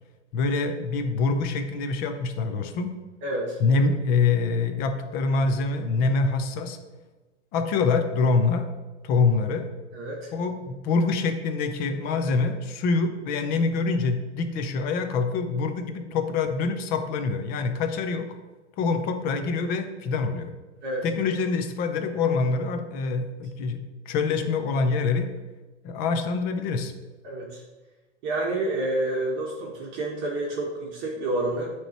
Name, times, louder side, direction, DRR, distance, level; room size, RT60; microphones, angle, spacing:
voice 1, 0.3-2.9 3.6-6.8 7.5-8.7 9.0-9.7 10.3-18.3 18.8-20.5 21.0-23.8 24.1-25.3 25.8-26.9, left 4 dB, 25° left, 7 dB, 0.6 m, -25 dB
voice 2, 3.2-3.6 9.9-10.3 20.8-21.0 27.2-27.6 28.2-31.7, right 2 dB, 30° right, -2 dB, 1.2 m, -29 dB
8.9 x 3.1 x 4.3 m, 1.2 s
hypercardioid pair, 125°, 36 cm